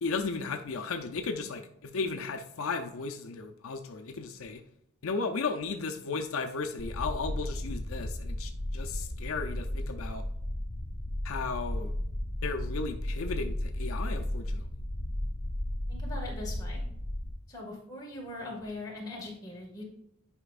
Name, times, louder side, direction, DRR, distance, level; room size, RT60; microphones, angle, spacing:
voice 1, 0.0-4.6 5.0-10.2 11.2-11.9 12.4-14.6, left 4 dB, 75° left, 5 dB, 0.5 m, -35 dB
sound 1, 6.8-17.3, left 1 dB, 45° left, 1.2 m, -34 dB
voice 2, 15.9-16.8 17.5-19.8, left 2 dB, 15° left, -4 dB, 1.8 m, -41 dB
9.8 x 5.0 x 2.5 m, 0.76 s
head